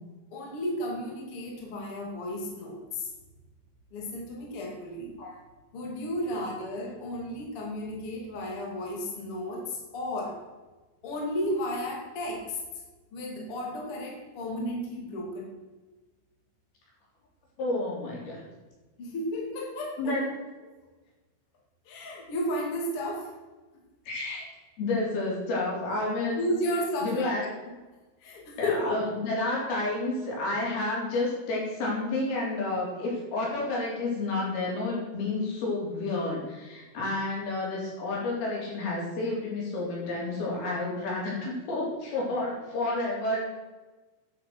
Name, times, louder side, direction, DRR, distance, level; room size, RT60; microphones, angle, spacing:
voice 1, 0.3-3.1 3.9-5.1 5.7-10.4 11.0-12.6 13.1-15.5 19.0-20.1 21.9-23.3 26.4-27.3 28.2-29.1, left 1 dB, 40° left, -1 dB, 3.0 m, -33 dB
voice 2, 17.6-18.4 20.0-20.4 24.1-24.4 24.8-26.4 27.0-27.4 28.6-43.4, left 2 dB, 75° left, -4 dB, 5.8 m, -30 dB
10.0 x 8.4 x 7.8 m, 1.2 s
omnidirectional pair, 4.4 m